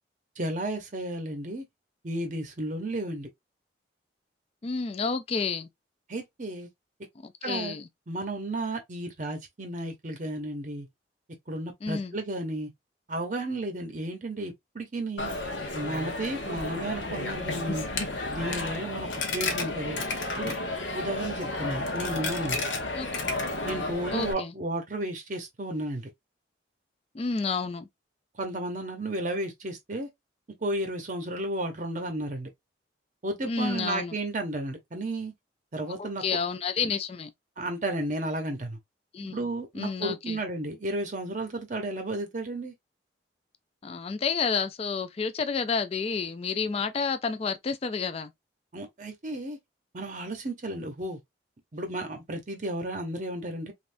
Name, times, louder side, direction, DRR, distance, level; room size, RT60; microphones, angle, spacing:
voice 1, 0.4-1.7 2.0-3.3 6.1-6.7 7.4-7.8 8.1-10.9 11.5-12.7 13.1-15.3 15.7-17.8 18.3-20.0 20.3-22.6 23.6-26.1 28.3-30.1 30.6-32.5 33.2-35.3 35.7-36.2 36.8-36.9 37.6-38.8 39.3-42.7 48.7-49.6 49.9-51.2 51.7-53.7, right 1 dB, 40° right, 0.7 m, -33 dB
voice 2, 4.6-5.7 7.2-7.9 11.8-12.1 22.9-23.1 24.1-24.5 27.1-27.9 33.4-34.1 36.0-37.3 39.1-39.4 39.7-40.4 43.8-48.3, left 5 dB, 30° left, 0.3 m, -30 dB
Coin (dropping), 15.2-24.3, left 2 dB, 75° left, 0.8 m, -32 dB
3.4 x 2.5 x 2.5 m
head